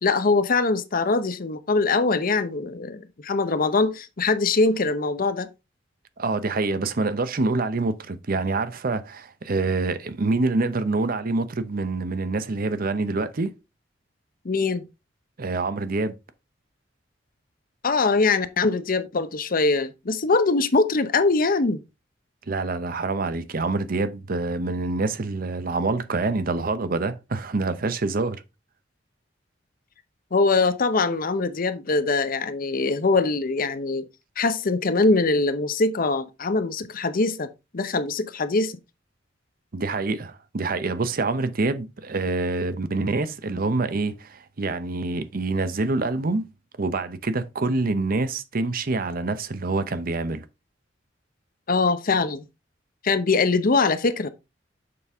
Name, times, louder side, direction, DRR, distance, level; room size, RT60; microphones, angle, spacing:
voice 1, 0.0-5.5 14.4-14.9 17.8-21.8 30.3-34.0 34.4-37.5 37.7-38.7 51.7-52.4 53.0-54.3, left 3 dB, 50° left, 0.7 m, -22 dB
voice 2, 6.2-13.5 15.4-16.2 22.5-28.4 39.7-46.5 46.8-50.5, right 3 dB, 50° right, 0.7 m, -26 dB
6.8 x 5.3 x 3.5 m
head